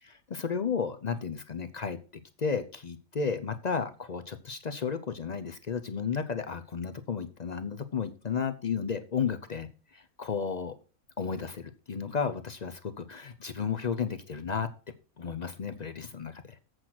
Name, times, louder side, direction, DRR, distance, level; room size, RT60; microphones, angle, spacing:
voice 1, 0.0-2.0 2.4-10.7 11.2-14.7 15.2-16.6, left 6 dB, 45° left, 9 dB, 0.5 m, -33 dB
7.9 x 6.3 x 6.0 m, 0.36 s
omnidirectional pair, 1.5 m